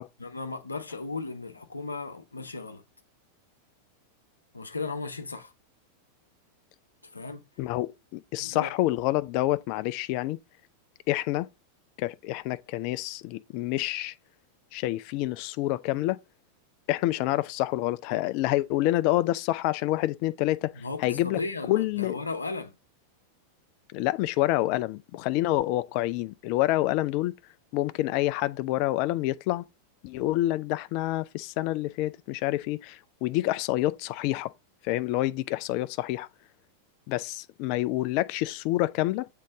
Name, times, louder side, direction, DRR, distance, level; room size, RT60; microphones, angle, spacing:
voice 1, 0.2-2.8 4.5-5.5 7.1-7.4 8.4-8.7 20.7-22.8, left 3 dB, 80° left, 0.8 m, -36 dB
voice 2, 7.6-10.4 11.1-11.5 12.0-14.1 14.7-16.2 16.9-21.4 21.7-22.2 23.9-27.4 27.7-29.7 30.0-34.5 34.8-36.3 37.1-39.3, left 16 dB, 45° left, 0.4 m, -27 dB
7.4 x 3.8 x 3.4 m
figure-of-eight pair, 90°, 0 cm